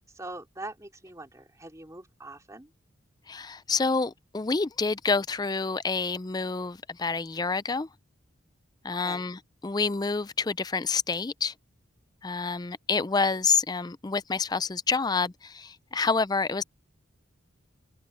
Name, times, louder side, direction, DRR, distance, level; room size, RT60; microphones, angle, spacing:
voice 1, 0.1-2.7 9.0-9.3, right 2 dB, 15° right, 3.3 m, -43 dB
voice 2, 3.3-7.9 8.8-11.5 12.2-16.6, left 4 dB, 20° left, 0.4 m, -28 dB
head